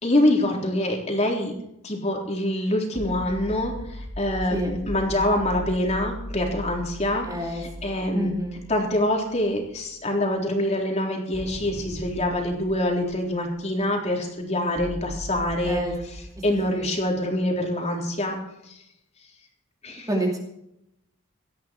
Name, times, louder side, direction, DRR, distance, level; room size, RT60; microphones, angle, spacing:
voice 1, 0.0-1.5 1.8-8.3 8.7-15.8 16.4-18.4 18.7-18.8 19.8-20.1, left 1 dB, 30° left, 1 dB, 3.8 m, -25 dB
sound 1, 2.9-9.3 9.6-9.7 11.3-13.8 14.7-17.5, equal, 55° right, 6.7 m, -38 dB
voice 2, 7.2-7.6 8.1-8.6 15.6-15.9 16.7-16.9 20.1-20.4, right 1 dB, 15° right, 1 dB, 2.5 m, -27 dB
18.5 x 13.5 x 4.6 m, 0.82 s
head